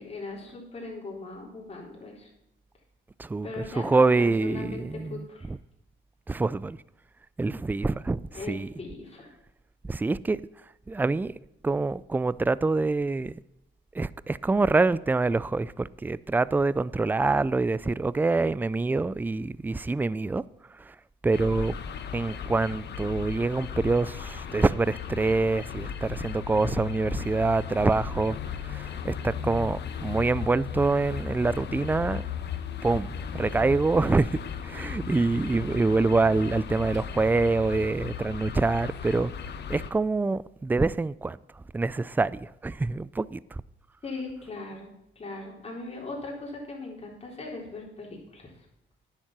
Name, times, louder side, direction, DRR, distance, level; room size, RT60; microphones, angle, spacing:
voice 1, 0.0-2.3 3.4-5.5 8.3-9.3 44.0-48.5, left 3 dB, 30° left, 4.0 m, -39 dB
voice 2, 3.2-5.6 6.3-6.8 7.4-8.7 9.9-10.4 10.9-11.3 11.6-13.4 13.9-20.4 20.8-20.9 21.2-21.7 22.1-32.2 32.8-39.3 39.7-41.4 41.7-43.6, right 3 dB, 10° right, 0.3 m, -26 dB
sound 1, 21.3-39.9, left 7 dB, 60° left, 1.0 m, -36 dB
10.0 x 7.3 x 6.0 m
cardioid pair, 90°, 20 cm